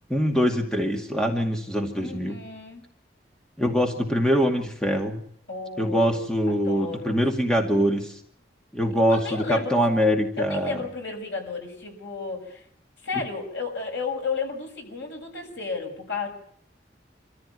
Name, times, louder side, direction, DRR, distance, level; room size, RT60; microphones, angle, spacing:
voice 1, 0.1-2.4 3.6-5.2 5.8-8.2 8.7-10.8, equal, 5° left, 3 dB, 2.2 m, -23 dB
voice 2, 2.0-2.8 5.5-6.2 6.5-7.6 9.1-9.9 10.4-12.6 13.0-16.3, left 4 dB, 90° left, 2 dB, 6.7 m, -33 dB
26.0 x 14.5 x 9.4 m, 0.67 s
head